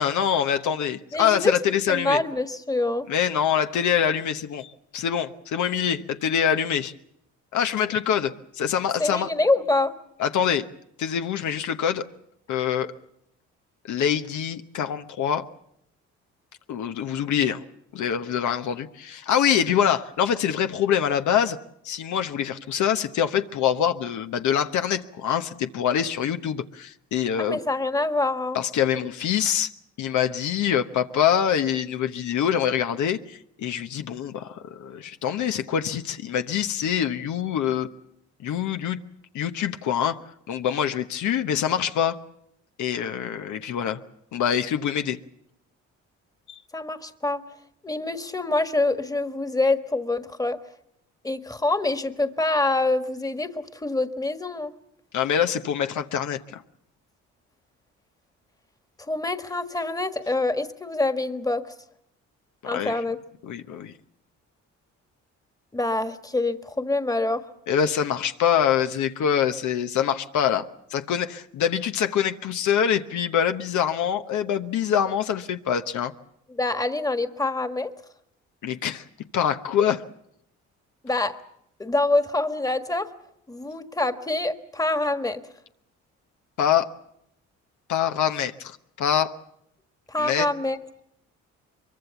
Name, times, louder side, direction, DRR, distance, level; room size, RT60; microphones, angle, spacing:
voice 1, 0.0-2.2 3.1-6.9 7.5-9.3 10.2-10.7 11.0-12.1 12.5-12.9 13.9-15.5 16.7-17.6 17.9-21.6 21.8-27.6 28.5-29.7 30.0-37.9 38.4-39.0 39.3-40.2 40.5-42.2 42.8-44.0 44.3-45.2 46.5-46.6 55.1-56.6 62.6-62.9 63.4-63.9 67.7-76.1 78.6-79.0 79.3-80.0 86.6-86.9 87.9-89.3 90.2-90.5, left 9 dB, 75° left, 8 dB, 1.1 m, -25 dB
voice 2, 1.1-1.5 1.9-3.1 9.0-9.9 27.4-28.6 46.7-47.4 47.8-50.6 51.2-54.7 59.1-61.6 62.6-63.2 65.7-67.4 76.5-77.9 81.0-81.4 81.8-83.1 83.5-85.4 90.1-90.8, left 2 dB, 10° left, 9 dB, 1.5 m, -25 dB
23.5 x 23.0 x 7.1 m, 0.76 s
cardioid pair, 90°, 30 cm